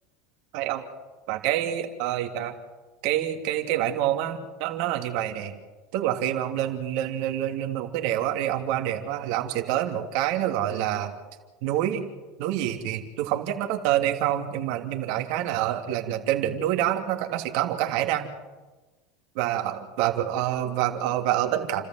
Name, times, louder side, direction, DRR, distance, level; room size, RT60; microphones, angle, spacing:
voice 1, 1.3-2.5 3.0-5.5 5.9-11.1 11.6-12.0 12.4-18.3 19.3-21.8, right 12 dB, 65° right, 4 dB, 2.9 m, -27 dB
30.0 x 14.0 x 7.8 m, 1.2 s
supercardioid pair, 105°, 0 cm